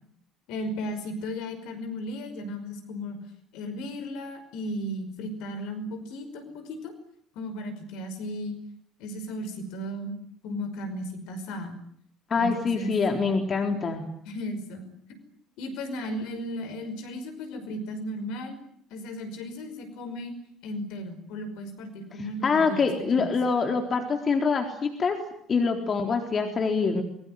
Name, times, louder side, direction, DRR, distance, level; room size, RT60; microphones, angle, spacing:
voice 1, 0.5-3.2 3.5-6.9 7.4-8.6 9.0-10.1 10.4-11.8 12.3-12.9 14.3-14.8 15.1-15.2 15.6-18.6 18.9-20.3 20.6-22.8 23.1-23.3, equal, 65° left, 9 dB, 5.5 m, -35 dB
voice 2, 12.3-14.0 22.4-25.2 25.5-27.0, left 4 dB, 40° left, 4 dB, 4.0 m, -25 dB
24.5 x 23.0 x 9.5 m, 0.69 s
figure-of-eight pair, 55°, 0 cm